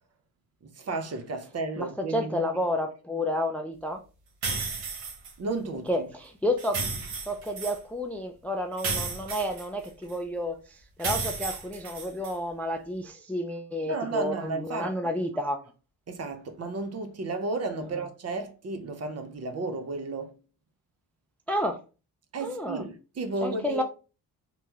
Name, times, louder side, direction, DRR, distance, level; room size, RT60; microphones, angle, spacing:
voice 1, 0.6-2.5 5.4-6.1 13.9-14.9 16.1-20.4 22.3-23.8, right 3 dB, 40° right, 0.7 m, -33 dB
voice 2, 1.8-4.0 5.9-6.8 7.3-15.6 21.5-21.8 22.4-22.8 23.4-23.8, left 1 dB, 5° left, 0.3 m, -30 dB
sound 1, 4.4-5.3 6.6-7.8 8.8-10.1 11.0-12.3, right 4 dB, 85° right, 1.1 m, -33 dB
3.0 x 2.2 x 2.8 m
supercardioid pair, 60°, 39 cm